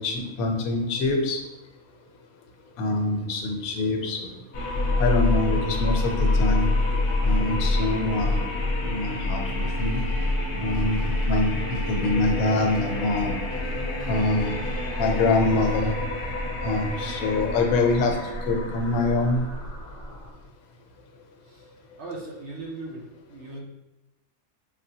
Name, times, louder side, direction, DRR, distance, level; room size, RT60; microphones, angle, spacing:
voice 1, 0.0-1.4 2.8-4.3 5.0-6.7 7.2-8.5 8.8-10.0 10.5-13.4 14.1-14.6 15.0-15.9 16.6-19.4, left 2 dB, 85° left, 3 dB, 1.0 m, -25 dB
sound 1, 4.5-20.4, left 2 dB, 50° left, 0.7 m, -27 dB
voice 2, 22.0-23.6, right 2 dB, 60° right, -2 dB, 0.8 m, -38 dB
3.7 x 2.1 x 2.7 m, 0.96 s
omnidirectional pair, 1.5 m